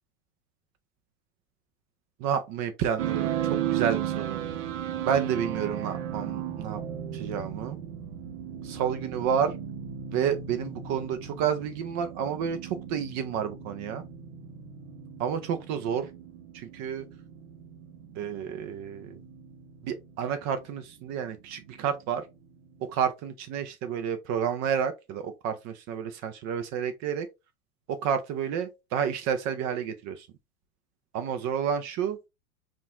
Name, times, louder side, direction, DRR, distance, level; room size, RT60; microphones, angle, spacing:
voice 1, 2.2-4.4 5.0-6.8 7.1-7.8 8.6-9.6 10.1-14.0 15.2-16.1 16.5-17.1 18.2-19.2 19.8-22.3 22.8-27.3 27.9-30.3 31.1-32.2, right 8 dB, 40° right, 0.6 m, -30 dB
sound 1, 3.0-22.9, right 10 dB, 55° right, 0.9 m, -36 dB
5.4 x 2.5 x 2.4 m
hypercardioid pair, 95°, 45 cm